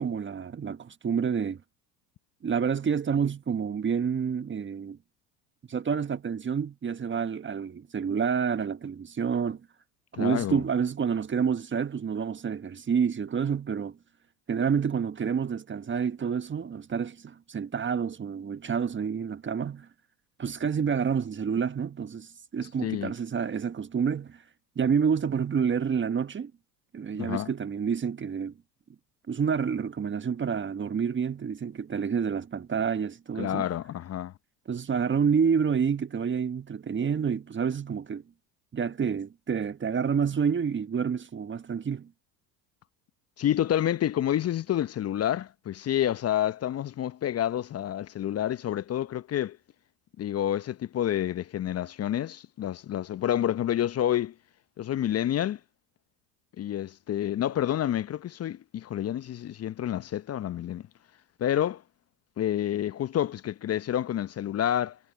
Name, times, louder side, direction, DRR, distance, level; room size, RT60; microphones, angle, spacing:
voice 1, 0.0-1.6 2.4-5.0 5.7-9.6 10.1-14.0 14.5-19.9 20.4-24.4 24.7-26.5 26.9-28.5 29.3-33.7 34.7-38.2 38.7-42.1, right 6 dB, 25° right, 1.5 m, -28 dB
voice 2, 10.1-10.6 22.8-23.1 27.2-27.5 33.4-34.3 43.4-49.6 50.2-54.3 54.8-55.6 56.6-60.8 61.4-61.8 62.4-65.0, left 11 dB, 30° left, 0.9 m, -28 dB
hypercardioid pair, 70°, 47 cm